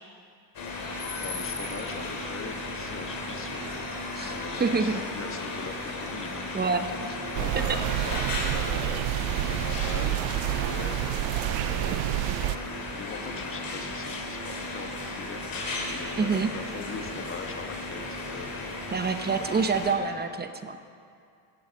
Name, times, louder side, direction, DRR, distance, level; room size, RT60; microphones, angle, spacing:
sound 1, 0.5-19.9, left 2 dB, 50° left, 2.8 m, -35 dB
voice 1, 1.2-6.9 7.3-12.2 12.9-18.8 19.4-19.6, left 5 dB, 30° left, 5 dB, 1.2 m, -41 dB
voice 2, 4.6-5.0 6.5-6.9 7.7-7.8 16.2-16.5 18.9-20.8, right 4 dB, 20° right, 9 dB, 0.8 m, -26 dB
sound 2, 7.4-12.6, right 16 dB, 75° right, 0.5 m, -28 dB
15.5 x 8.0 x 6.4 m, 2.4 s
cardioid pair, 95°, 45 cm